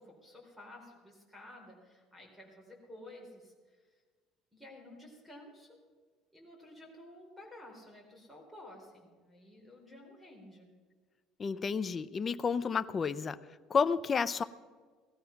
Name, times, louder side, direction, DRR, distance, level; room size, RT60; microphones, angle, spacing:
voice 1, 0.0-3.8 4.5-5.8 6.3-10.7, left 1 dB, ahead, 0 dB, 3.9 m, -53 dB
voice 2, 11.4-13.4 13.7-14.4, left 5 dB, 25° left, 13 dB, 0.5 m, -31 dB
17.5 x 13.5 x 5.8 m, 1.5 s
cardioid pair, 150°, 0 cm